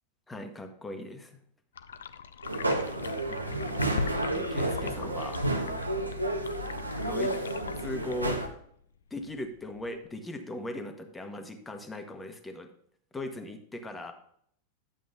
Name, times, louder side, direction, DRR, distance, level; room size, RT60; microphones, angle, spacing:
voice 1, 0.3-1.4 3.3-3.7 4.3-5.4 7.0-7.3 7.8-8.4 9.1-12.7 13.1-14.1, left 1 dB, 10° left, 6 dB, 1.2 m, -39 dB
sound 1, 1.8-10.1, left 6 dB, 65° left, 0.4 m, -41 dB
sound 2, 2.4-8.5, right 1 dB, 85° right, 0.9 m, -31 dB
10.5 x 7.5 x 2.7 m, 0.65 s
figure-of-eight pair, 90°, 0 cm